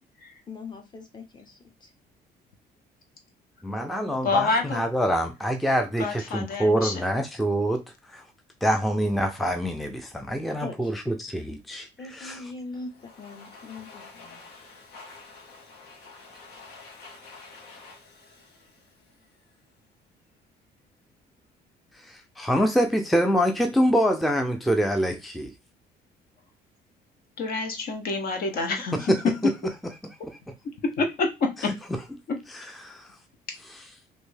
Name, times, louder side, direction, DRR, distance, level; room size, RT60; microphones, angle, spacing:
voice 1, 0.5-1.9 10.6-10.9 12.0-14.5, left 3 dB, 25° left, 0.9 m, -41 dB
voice 2, 3.6-7.8 8.1-8.2 8.6-11.9 12.1-12.4 21.9-25.5 28.9-29.5 30.2-30.4 31.6-31.7 32.5-33.2 33.6-33.9, equal, ahead, 0.4 m, -25 dB
voice 3, 4.2-4.8 6.0-6.9 27.4-29.0 30.8-31.7 32.3-32.4, left 3 dB, 60° left, 0.9 m, -27 dB
Domestic sounds home sounds, 12.7-19.6, left 3 dB, 90° left, 1.2 m, -48 dB
3.1 x 2.7 x 3.2 m
cardioid pair, 110°, 17 cm